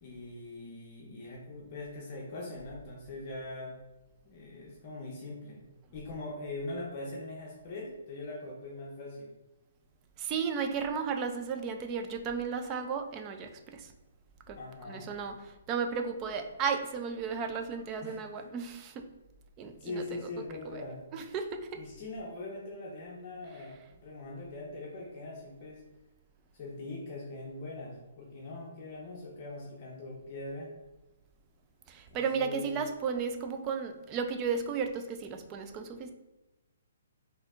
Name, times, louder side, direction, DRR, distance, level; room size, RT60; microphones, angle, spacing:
voice 1, 0.0-3.7 4.2-5.6 5.9-9.3 14.5-15.1 18.0-18.6 19.8-21.0 21.7-23.8 24.0-25.8 26.5-30.7 32.1-32.8, left 2 dB, 35° left, -2 dB, 0.6 m, -42 dB
voice 2, 10.2-13.9 14.5-19.0 19.6-20.8 21.1-21.8 31.9-36.1, right 6 dB, 20° right, 6 dB, 0.3 m, -34 dB
4.1 x 2.7 x 2.4 m, 1.0 s
hypercardioid pair, 160°, 0 cm